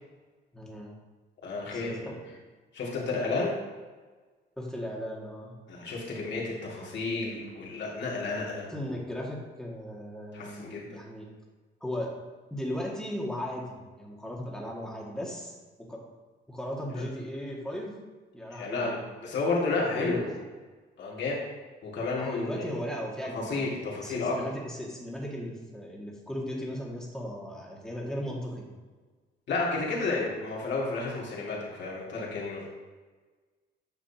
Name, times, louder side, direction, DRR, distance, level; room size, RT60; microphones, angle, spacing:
voice 1, 0.5-0.9 1.7-2.3 2.9-3.5 4.6-5.5 8.7-11.3 11.8-12.1 12.5-16.0 16.5-18.0 18.3-18.9 19.8-20.2 22.2-28.7, equal, 5° left, -3 dB, 2.0 m, -37 dB
voice 2, 1.4-2.1 2.7-3.6 5.7-8.7 10.3-11.0 16.9-17.1 18.5-20.3 21.0-21.4 21.8-22.7 23.3-24.3 29.5-32.7, left 3 dB, 65° left, -4 dB, 2.4 m, -31 dB
9.2 x 6.1 x 2.9 m, 1.3 s
cardioid pair, 90°, 20 cm